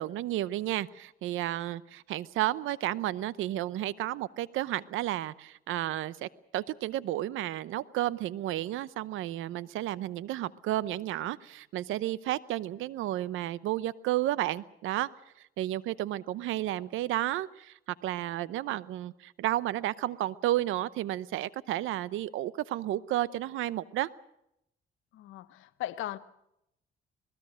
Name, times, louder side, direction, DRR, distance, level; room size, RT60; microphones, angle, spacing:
voice 1, 0.0-15.1 15.6-24.1, right 14 dB, 90° right, 0.8 m, -32 dB
voice 2, 25.1-26.2, left 13 dB, 90° left, 1.0 m, -38 dB
25.5 x 20.0 x 6.3 m
cardioid pair, 90°, 20 cm